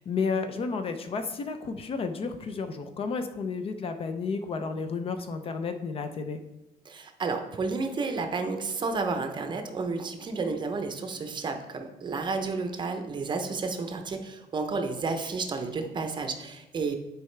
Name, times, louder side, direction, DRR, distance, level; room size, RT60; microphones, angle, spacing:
voice 1, 0.0-6.4, left 4 dB, 35° left, 8 dB, 0.4 m, -32 dB
voice 2, 6.9-16.9, right 4 dB, 30° right, 6 dB, 0.6 m, -31 dB
11.5 x 4.7 x 3.3 m, 0.95 s
cardioid pair, 175°, 17 cm